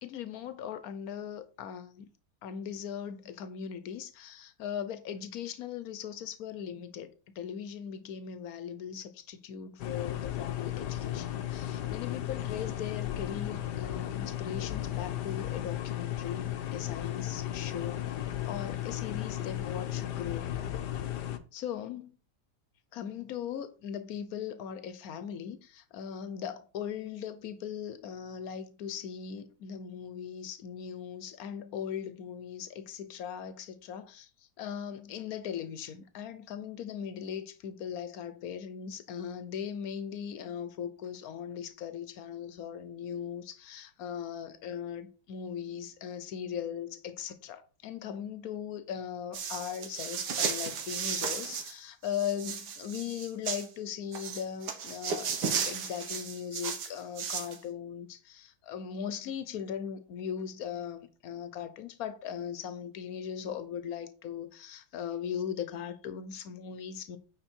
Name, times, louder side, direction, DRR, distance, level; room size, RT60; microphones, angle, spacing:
voice 1, 0.0-2.1 2.4-18.1 18.4-20.7 21.5-22.2 22.9-34.3 34.6-67.2, left 8 dB, 65° left, 1.3 m, -39 dB
sound 1, 9.8-21.4, left 12 dB, 85° left, 1.4 m, -35 dB
sound 2, 49.3-51.7 52.0-53.7 54.1-57.6, right 6 dB, 85° right, 1.7 m, -34 dB
9.1 x 4.2 x 4.5 m
omnidirectional pair, 1.8 m